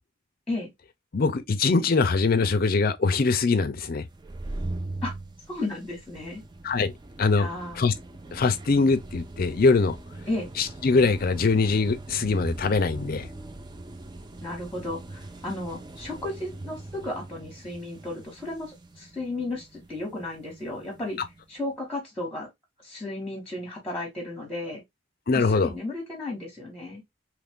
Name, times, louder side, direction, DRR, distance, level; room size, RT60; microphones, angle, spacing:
voice 1, 1.1-4.0 6.6-6.9 7.2-7.5 7.8-7.9 8.3-10.0 10.6-13.3 25.3-25.7, left 4 dB, 45° left, 0.5 m, -22 dB
sound 1, 4.0-21.4, right 2 dB, 20° right, 0.4 m, -41 dB
voice 2, 5.5-6.4 7.4-7.8 10.3-10.5 14.4-21.2 21.5-22.5 22.8-24.8 25.3-27.0, left 2 dB, 5° left, 1.1 m, -34 dB
3.0 x 2.5 x 3.5 m
head